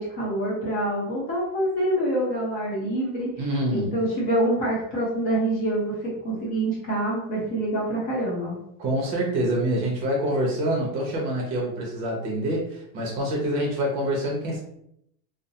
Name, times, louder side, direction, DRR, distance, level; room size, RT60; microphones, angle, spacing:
voice 1, 0.0-3.3 3.7-8.6, right 1 dB, 25° left, -5 dB, 0.8 m, -26 dB
voice 2, 3.4-3.9 8.8-14.6, right 1 dB, 35° right, -2 dB, 0.9 m, -26 dB
2.6 x 2.1 x 2.7 m, 0.74 s
supercardioid pair, 145°, 50 cm